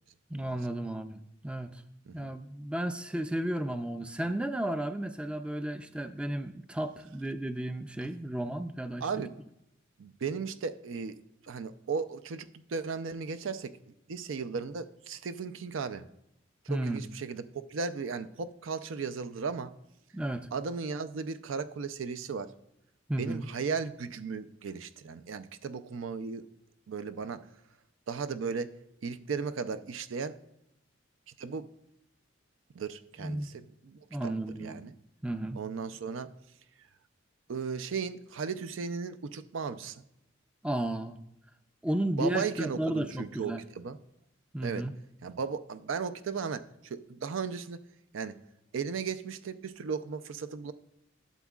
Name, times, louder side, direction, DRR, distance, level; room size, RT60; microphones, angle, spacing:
voice 1, 0.3-1.8 2.1-9.1 16.7-17.1 20.1-20.5 23.1-23.5 33.2-33.5 34.1-34.8 35.2-35.6 40.6-41.2 41.8-43.6 44.5-44.9, right 1 dB, 5° right, 9 dB, 0.3 m, -33 dB
voice 2, 9.0-9.3 10.0-11.2 11.4-13.7 14.1-16.0 16.7-19.7 20.5-22.5 23.2-26.4 26.9-27.4 28.1-28.7 29.0-30.3 31.4-31.7 32.7-34.9 35.5-36.3 37.5-40.0 42.2-44.0 44.6-44.9 45.2-47.8 48.1-48.4 48.7-50.7, right 5 dB, 80° right, 12 dB, 0.5 m, -36 dB
12.0 x 7.2 x 2.3 m, 0.83 s
head